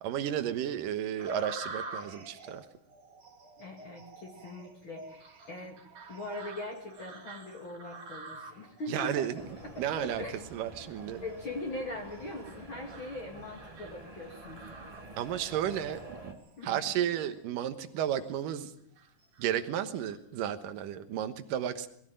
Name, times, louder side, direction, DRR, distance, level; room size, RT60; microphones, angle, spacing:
voice 1, 0.0-2.7 8.9-9.3 9.8-10.2 10.5-11.2 15.2-16.4 16.6-18.7 19.4-21.9, right 10 dB, 75° right, 9 dB, 2.8 m, -33 dB
sound 1, 1.2-15.5 16.0-16.6 17.1-17.3 17.8-18.5 19.0-20.2, right 2 dB, 60° right, 5.0 m, -48 dB
voice 2, 3.6-5.8 6.1-9.3 9.6-10.4 11.2-14.6 16.6-17.0, left 2 dB, 40° left, 0 dB, 2.9 m, -41 dB
sound 2, 9.4-16.3, right 2 dB, 10° right, 2.5 m, -48 dB
21.5 x 14.5 x 9.1 m, 0.68 s
omnidirectional pair, 3.9 m